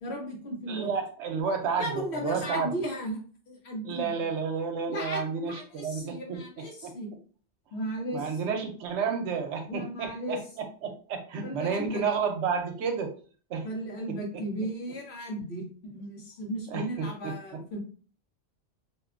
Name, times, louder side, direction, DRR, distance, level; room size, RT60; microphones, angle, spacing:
voice 1, 0.0-0.9 1.8-3.2 3.5-4.3 4.9-7.1 7.7-8.7 9.6-10.4 11.4-12.0 13.6-17.8, right 1 dB, 70° left, -1 dB, 1.1 m, -35 dB
voice 2, 0.7-2.7 3.9-6.4 6.8-6.9 8.1-10.4 10.8-13.1 13.5-13.7 16.7-17.4, right 5 dB, 85° right, 4 dB, 0.9 m, -31 dB
2.7 x 2.2 x 2.4 m, 0.42 s
omnidirectional pair, 1.2 m